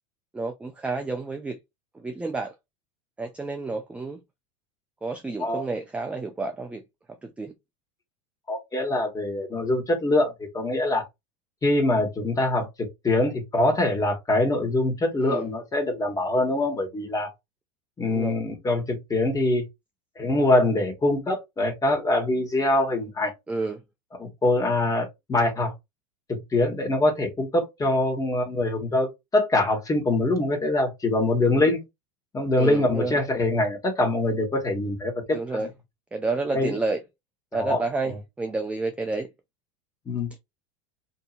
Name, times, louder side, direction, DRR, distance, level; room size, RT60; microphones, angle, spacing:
voice 1, 0.3-1.6 1.9-2.5 3.2-4.2 5.0-6.8 7.2-7.5 15.2-15.5 18.1-18.4 23.5-23.8 31.5-31.6 32.6-33.2 35.3-35.7 36.1-37.0 37.5-39.3, right 3 dB, 5° right, 0.3 m, -30 dB
voice 2, 8.5-11.0 11.6-17.3 18.0-19.7 20.2-23.3 24.2-25.7 26.3-31.8 32.3-35.7 36.5-36.8 37.5-37.8 38.1-38.2 40.1-40.3, left 2 dB, 20° left, 1.2 m, -24 dB
2.8 x 2.6 x 2.4 m
supercardioid pair, 120°, 18 cm